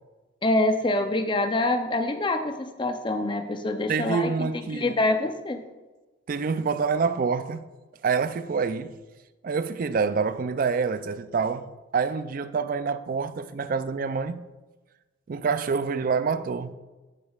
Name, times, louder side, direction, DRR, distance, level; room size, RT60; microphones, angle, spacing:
voice 1, 0.4-5.6, left 2 dB, 25° left, 0.5 m, -26 dB
voice 2, 3.9-5.0 6.3-7.6 8.0-9.0 9.4-14.4 15.3-16.7, right 5 dB, 45° right, 0.3 m, -27 dB
15.0 x 5.3 x 2.4 m
head